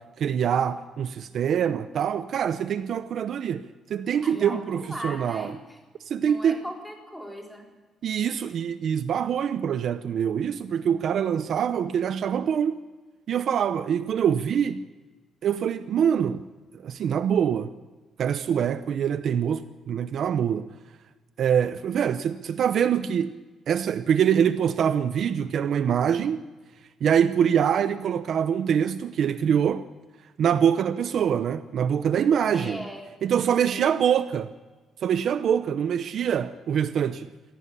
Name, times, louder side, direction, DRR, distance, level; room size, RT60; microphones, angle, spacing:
voice 1, 0.0-5.6 6.1-6.6 8.0-12.8 13.3-14.8 15.4-16.4 16.7-17.7 18.2-20.7 21.4-23.3 23.7-26.4 27.0-29.8 30.4-32.9 33.2-34.5 35.0-37.3, right 8 dB, 55° right, 0.7 m, -24 dB
voice 2, 4.2-5.6 6.2-7.7 32.5-33.0 33.7-33.9, equal, 5° left, 4.1 m, -38 dB
25.0 x 17.5 x 6.8 m
cardioid pair, 160°, 0 cm